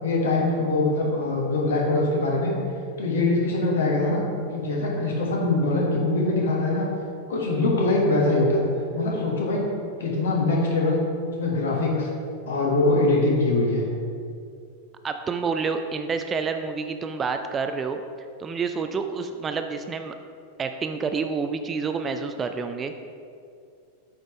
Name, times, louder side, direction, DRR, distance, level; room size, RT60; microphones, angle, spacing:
voice 1, 0.0-2.5 3.0-4.2 4.5-6.8 7.3-8.6 8.9-9.6 10.0-11.0 11.4-12.1 12.5-13.8, left 2 dB, 65° left, -2 dB, 1.4 m, -23 dB
voice 2, 15.0-18.0 18.4-20.1 20.6-23.0, right 5 dB, 20° right, 7 dB, 0.4 m, -28 dB
8.1 x 5.0 x 3.2 m, 2.3 s
figure-of-eight pair, 90°, 0 cm